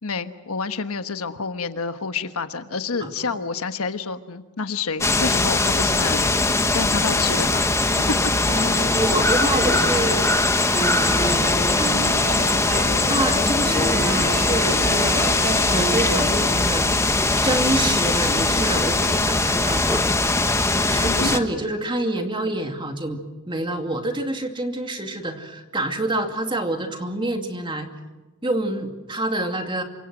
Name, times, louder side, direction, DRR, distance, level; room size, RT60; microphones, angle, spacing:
voice 1, 0.0-7.6 8.1-8.2 21.1-21.3, left 4 dB, 70° left, 9 dB, 1.3 m, -29 dB
sound 1, 5.0-21.4, left 2 dB, 15° left, 1.1 m, -21 dB
sound 2, 8.5-10.3 10.7-16.5, right 1 dB, 40° right, 4.7 m, -29 dB
voice 2, 8.9-10.2 10.8-11.5 13.0-17.2 17.4-20.2 20.8-23.2 23.5-27.9 28.4-29.8, right 1 dB, 20° right, 5 dB, 2.4 m, -27 dB
28.0 x 25.0 x 6.2 m, 1.2 s
head